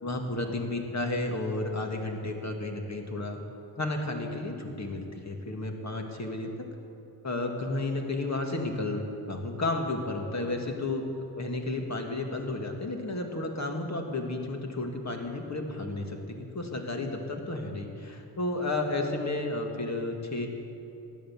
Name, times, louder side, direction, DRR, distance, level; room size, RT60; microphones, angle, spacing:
voice 1, 0.0-3.4 3.8-6.5 7.2-11.0 11.4-20.5, left 2 dB, 45° left, 3 dB, 2.0 m, -32 dB
15.5 x 10.5 x 7.2 m, 2.9 s
wide cardioid pair, 90°, 39 cm